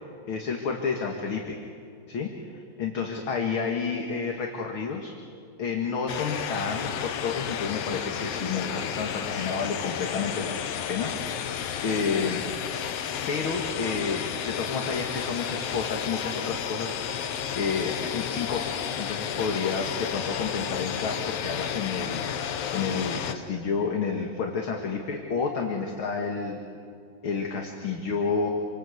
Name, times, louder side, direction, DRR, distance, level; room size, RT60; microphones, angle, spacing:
voice 1, 0.2-1.6 2.1-5.1 5.6-10.5 10.9-11.5 11.8-12.4 13.3-17.0 17.5-22.2 22.7-26.6 27.2-28.5, left 5 dB, 45° left, 1 dB, 2.4 m, -30 dB
sound 1, 6.1-23.4, left 8 dB, 65° left, 1.8 m, -32 dB
28.0 x 25.5 x 8.0 m, 2.4 s
omnidirectional pair, 3.6 m